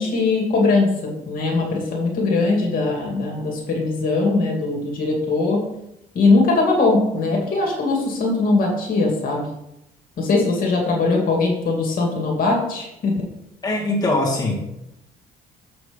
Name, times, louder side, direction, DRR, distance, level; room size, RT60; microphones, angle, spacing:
voice 1, 0.0-5.6 6.1-9.5 10.2-13.2, left 3 dB, 55° left, 0 dB, 2.4 m, -20 dB
voice 2, 13.6-14.6, left 2 dB, 25° left, -4 dB, 2.2 m, -21 dB
7.1 x 6.0 x 5.3 m, 0.84 s
cardioid pair, 110°, 17 cm